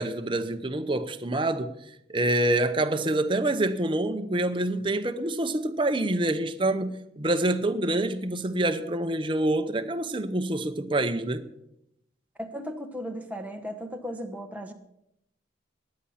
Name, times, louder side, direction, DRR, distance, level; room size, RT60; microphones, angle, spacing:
voice 1, 0.0-1.7 2.1-11.5, right 1 dB, 25° right, 0.8 m, -26 dB
voice 2, 12.4-14.7, equal, 10° right, 1.2 m, -36 dB
15.5 x 10.0 x 5.8 m
head